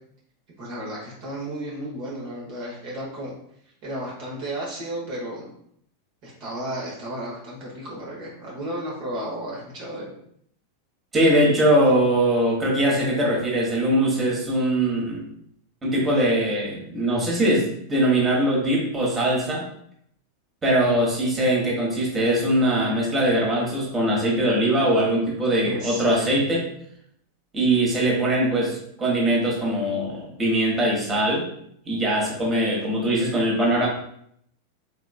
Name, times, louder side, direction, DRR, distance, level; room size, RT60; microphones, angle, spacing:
voice 1, 0.6-3.3 3.8-5.5 6.2-10.1 25.6-26.2, right 1 dB, 45° right, -4 dB, 1.1 m, -33 dB
voice 2, 11.1-15.2 15.8-19.6 20.6-26.6 27.5-31.4 31.9-33.9, right 1 dB, 15° right, -4 dB, 1.3 m, -21 dB
3.7 x 3.4 x 2.3 m, 0.70 s
figure-of-eight pair, 90°, 0 cm